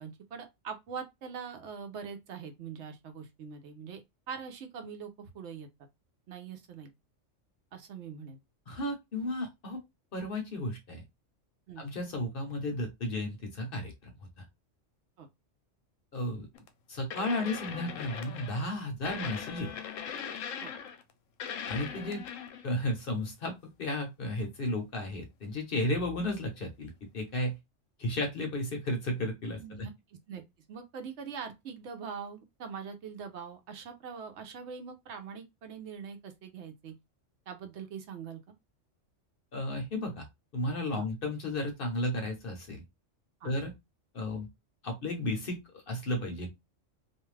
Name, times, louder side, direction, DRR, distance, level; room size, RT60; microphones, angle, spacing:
voice 1, 0.0-4.0 4.3-5.7 6.3-6.9 7.7-8.4 11.7-11.8 15.2-15.3 20.6-20.7 29.6-30.4 30.7-37.0 37.5-38.4 40.9-41.0 43.4-43.5, right 6 dB, 70° right, 0.9 m, -43 dB
voice 2, 8.7-9.8 10.1-11.0 11.8-13.9 14.4-14.5 16.1-16.5 16.9-19.7 21.6-22.2 22.6-27.6 28.0-29.6 39.5-40.3 40.5-42.8 43.4-43.7 44.1-44.5 44.8-46.5, left 1 dB, 55° left, 0.8 m, -33 dB
sound 1, 16.5-16.7 17.1-18.7 19.1-21.1 21.4-22.7 25.0-25.1, left 7 dB, 85° left, 1.0 m, -40 dB
2.5 x 2.3 x 3.1 m
omnidirectional pair, 1.3 m